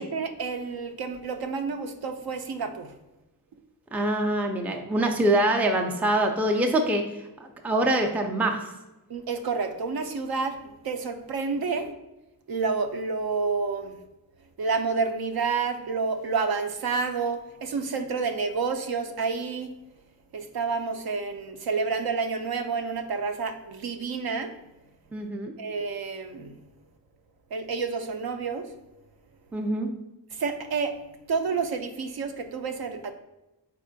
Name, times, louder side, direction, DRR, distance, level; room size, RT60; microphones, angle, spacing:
voice 1, 0.0-2.9 9.1-10.6 10.8-11.9 12.5-14.0 14.6-19.8 20.3-24.5 25.6-26.5 27.5-28.7 30.3-31.0 31.3-33.1, right 4 dB, 65° right, 7 dB, 0.5 m, -29 dB
voice 2, 3.9-8.7 25.1-25.5 29.5-29.9, right 1 dB, 5° right, 2 dB, 0.3 m, -25 dB
4.5 x 4.1 x 2.6 m, 0.99 s
wide cardioid pair, 110°, 40 cm